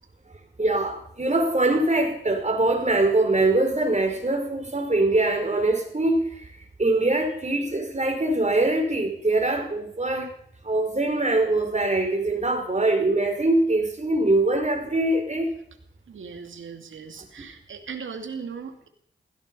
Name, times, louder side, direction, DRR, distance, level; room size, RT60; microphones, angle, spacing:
voice 1, 0.6-6.3 6.8-10.3 10.6-15.5, right 2 dB, 35° right, 5.0 m, -23 dB
voice 2, 16.1-18.9, right 6 dB, 80° right, 2.5 m, -38 dB
16.5 x 15.5 x 5.6 m
cardioid pair, 40°, 20 cm